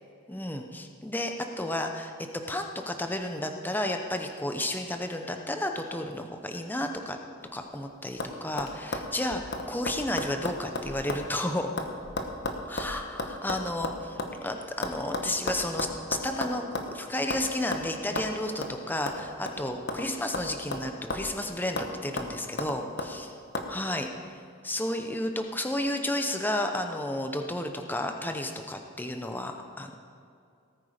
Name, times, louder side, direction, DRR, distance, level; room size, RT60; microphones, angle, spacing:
voice 1, 0.3-2.1 2.5-7.2 7.5-11.7 12.7-23.3 23.7-30.0, left 1 dB, 10° left, 4 dB, 0.8 m, -32 dB
sound 1, 7.4-7.8 8.2-8.3 8.6-11.3 11.5-14.3 14.8-17.0 17.3-17.5 17.7-17.9 18.2-18.3 18.6-18.7 19.1-20.1 20.3-21.4 21.8-21.9 22.2-23.1 23.5-23.7, left 2 dB, 55° left, 1.1 m, -34 dB
18.0 x 9.2 x 5.0 m, 2.4 s
head